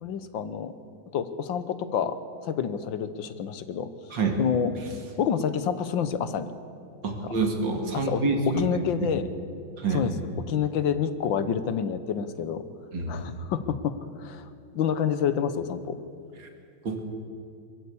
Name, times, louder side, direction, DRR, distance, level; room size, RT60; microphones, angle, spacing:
voice 1, 0.0-0.7 1.1-2.2 2.4-3.9 4.4-4.7 5.2-6.5 7.2-7.3 7.9-9.3 9.9-10.1 10.5-12.6 13.1-16.0, left 7 dB, 90° left, 12 dB, 1.7 m, -28 dB
voice 2, 4.1-4.4 7.0-8.7 9.8-10.1 12.9-13.2 16.8-17.0, right 3 dB, 75° right, 3 dB, 3.0 m, -27 dB
22.5 x 14.5 x 8.5 m, 2.5 s
omnidirectional pair, 2.0 m